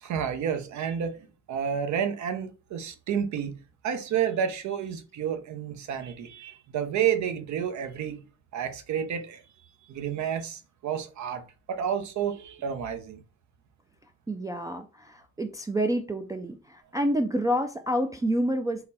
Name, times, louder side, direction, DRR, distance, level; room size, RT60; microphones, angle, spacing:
voice 1, 0.0-3.6 3.8-8.2 8.5-11.4 11.7-13.2, right 8 dB, 70° right, 0.8 m, -30 dB
voice 2, 14.3-18.9, equal, 10° right, 0.3 m, -28 dB
4.0 x 2.2 x 4.0 m
cardioid pair, 90°, 30 cm